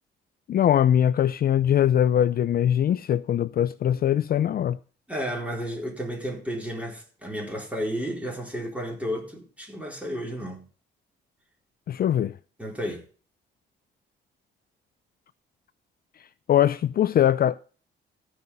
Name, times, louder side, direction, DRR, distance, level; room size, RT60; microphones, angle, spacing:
voice 1, 0.5-4.8 11.9-12.4 16.5-17.6, left 10 dB, 50° left, 0.4 m, -21 dB
voice 2, 5.1-10.6 12.6-13.0, equal, 5° right, 4.2 m, -32 dB
14.5 x 5.5 x 5.5 m
cardioid pair, 90°, 20 cm